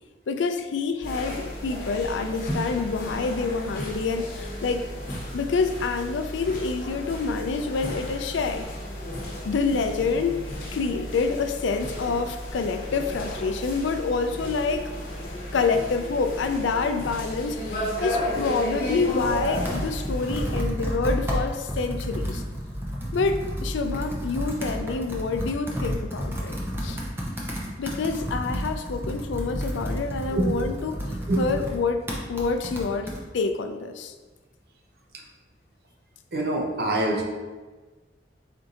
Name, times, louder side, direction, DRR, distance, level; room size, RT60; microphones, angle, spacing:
voice 1, 0.3-4.9 5.3-8.7 9.4-10.4 10.7-14.9 15.5-22.4 23.1-27.0 27.8-30.9 31.4-34.1, left 4 dB, 90° left, 7 dB, 0.4 m, -27 dB
sound 1, 1.0-20.6, equal, 50° left, 1.0 m, -33 dB
Computer keyboard, 18.6-33.2, equal, 15° right, 0.6 m, -31 dB
voice 2, 30.3-30.6 31.3-31.6 35.1-35.2 36.3-37.2, right 1 dB, 55° right, 0 dB, 0.7 m, -26 dB
4.4 x 2.6 x 3.7 m, 1.3 s
head